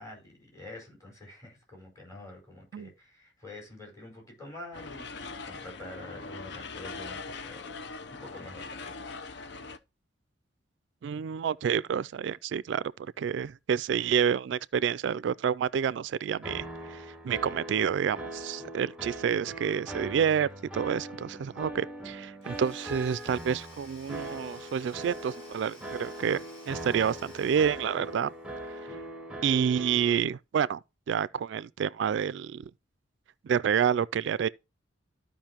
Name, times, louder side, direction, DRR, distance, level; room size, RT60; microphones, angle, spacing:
voice 1, 0.0-7.8 8.1-9.0, left 2 dB, 20° left, 4.7 m, -47 dB
sound 1, 4.7-9.8, left 4 dB, 65° left, 0.7 m, -41 dB
voice 2, 11.0-12.9 13.2-16.6 16.9-17.0 17.2-28.3 29.4-30.8 31.1-32.6 33.4-34.5, right 7 dB, 70° right, 0.3 m, -28 dB
sound 2, 16.4-30.2, right 1 dB, 5° right, 1.0 m, -41 dB
Domestic sounds home sounds / Tools, 22.4-28.5, left 3 dB, 35° left, 3.0 m, -54 dB
14.0 x 5.2 x 2.9 m
head